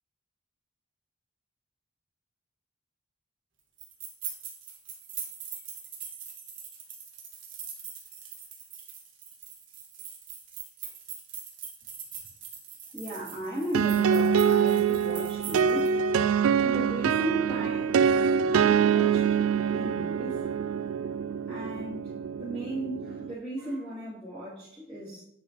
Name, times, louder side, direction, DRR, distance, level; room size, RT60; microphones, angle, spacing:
sound 1, 3.8-15.9, right 7 dB, 65° right, 1.7 m, -42 dB
voice 1, 12.9-15.9 16.6-20.5 21.5-25.2, right 1 dB, 5° right, -16 dB, 2.8 m, -36 dB
sound 2, 13.7-23.3, right 7 dB, 90° right, 0.4 m, -25 dB
9.7 x 5.1 x 3.1 m, 0.74 s
head